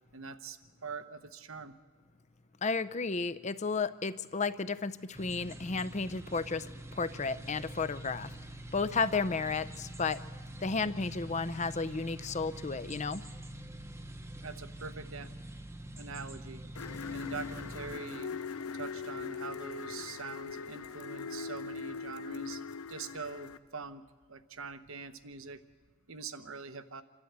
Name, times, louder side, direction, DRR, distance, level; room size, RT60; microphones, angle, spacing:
voice 1, 0.1-1.7 14.4-15.3 16.0-16.6 17.1-18.3 18.7-22.6 22.9-24.0 24.3-25.6 26.1-27.0, right 4 dB, 65° right, 11 dB, 1.0 m, -43 dB
voice 2, 2.6-8.3 8.7-10.2 10.6-13.2, left 4 dB, 30° left, 14 dB, 0.6 m, -33 dB
sound 1, 5.1-18.0, right 1 dB, 10° right, 0.9 m, -45 dB
sound 2, 16.8-23.6, left 5 dB, 80° left, 0.6 m, -41 dB
28.0 x 12.5 x 8.1 m, 1.4 s
head